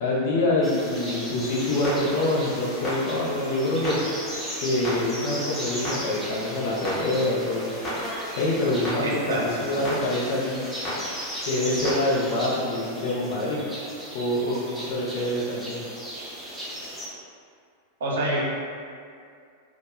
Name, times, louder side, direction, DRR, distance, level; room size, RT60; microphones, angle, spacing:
voice 1, 0.0-4.0 4.6-7.8 8.4-10.6 11.4-13.6 14.1-15.8, left 1 dB, 50° left, -5 dB, 0.6 m, -26 dB
sound 1, 0.6-17.1, equal, 5° right, 0.5 m, -36 dB
Clock, 1.5-12.0, equal, 15° left, 0.9 m, -36 dB
voice 2, 9.0-9.4 9.7-9.8 18.0-18.4, right 1 dB, 65° right, -4 dB, 0.5 m, -26 dB
2.1 x 2.0 x 3.0 m, 2.3 s
figure-of-eight pair, 90°, 0 cm